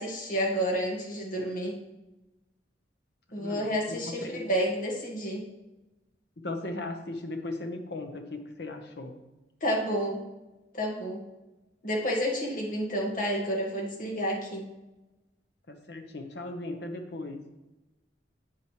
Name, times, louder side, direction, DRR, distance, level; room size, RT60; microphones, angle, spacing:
voice 1, 0.0-1.8 3.3-5.4 9.6-10.2 10.7-11.2 11.8-14.7, equal, 45° left, -1 dB, 1.9 m, -30 dB
voice 2, 3.4-4.4 6.4-9.1 15.7-17.4, left 2 dB, 65° left, 5 dB, 1.2 m, -37 dB
8.8 x 8.7 x 3.2 m, 1.0 s
head